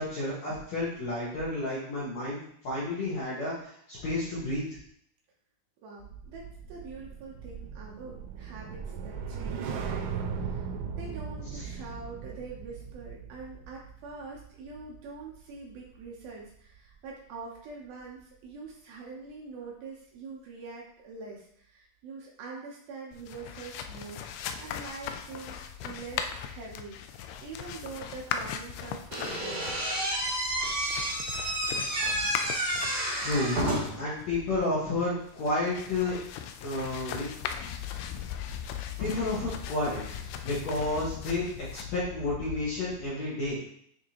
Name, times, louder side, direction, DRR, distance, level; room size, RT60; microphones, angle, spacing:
voice 1, 0.0-2.4 2.6-4.6 11.5-11.6 31.8-32.0 33.2-33.6 34.0-36.2 36.6-37.3 39.0-41.5 41.7-43.6, left 2 dB, 60° left, -8 dB, 2.0 m, -31 dB
voice 2, 5.8-10.6 11.0-25.6 25.8-29.7, right 4 dB, 70° right, -3 dB, 2.5 m, -44 dB
sound 1, 6.0-16.4 16.8-17.1, right 6 dB, 90° right, 2.9 m, -38 dB
sound 2, 23.1-43.0, left 8 dB, 85° left, 2.2 m, -39 dB
Slam / Squeak, 29.1-34.1, right 1 dB, 40° right, 1.5 m, -30 dB
9.2 x 3.6 x 2.9 m, 0.66 s
omnidirectional pair, 4.9 m